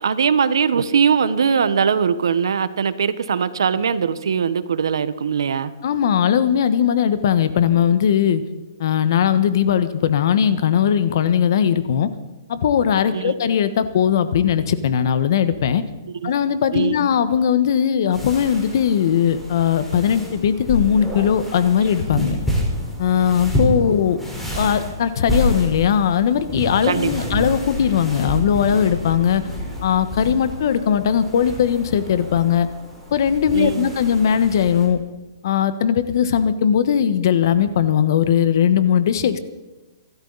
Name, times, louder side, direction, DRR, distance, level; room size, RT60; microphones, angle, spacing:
voice 1, 0.0-5.7 13.1-13.4 16.2-16.3 16.7-17.1 26.8-27.5 33.5-33.9, right 6 dB, 80° right, 14 dB, 1.2 m, -21 dB
voice 2, 5.8-8.4 8.8-12.1 12.5-15.8 16.2-22.4 23.0-24.2 24.5-29.4 29.8-32.7 33.1-35.0 35.4-39.4, left 8 dB, 60° left, 12 dB, 1.3 m, -19 dB
sound 1, 18.1-34.9, equal, ahead, 4.4 m, -29 dB
27.0 x 13.0 x 4.1 m, 1.1 s
hypercardioid pair, 155°, 2 cm